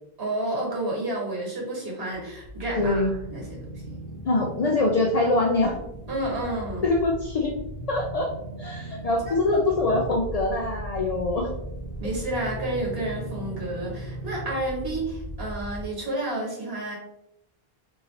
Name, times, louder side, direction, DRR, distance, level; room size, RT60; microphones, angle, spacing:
voice 1, 0.2-4.0 6.1-6.8 9.3-9.4 12.0-17.0, right 1 dB, 70° right, -3 dB, 1.8 m, -30 dB
sound 1, 2.1-15.8, right 1 dB, 45° right, 1.1 m, -37 dB
voice 2, 2.8-3.1 4.2-5.8 6.8-7.5 7.9-8.3 8.6-11.5, left 2 dB, 50° left, 0 dB, 0.5 m, -24 dB
4.6 x 2.6 x 3.2 m, 0.81 s
omnidirectional pair, 1.0 m